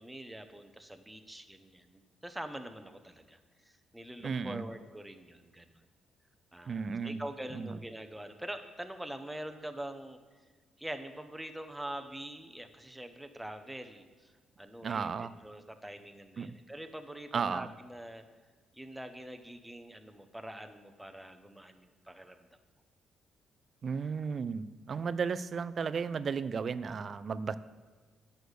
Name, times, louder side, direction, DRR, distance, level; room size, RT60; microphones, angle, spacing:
voice 1, 0.0-5.8 6.5-10.2 10.8-14.3 14.6-18.2 18.7-22.5, right 1 dB, 5° right, 8 dB, 0.9 m, -44 dB
voice 2, 4.2-4.6 6.7-7.2 7.5-7.8 14.8-15.3 16.4-16.5 17.3-17.7 23.8-27.6, right 5 dB, 45° right, 15 dB, 0.4 m, -34 dB
9.2 x 6.5 x 6.5 m, 1.4 s
cardioid pair, 90°, 0 cm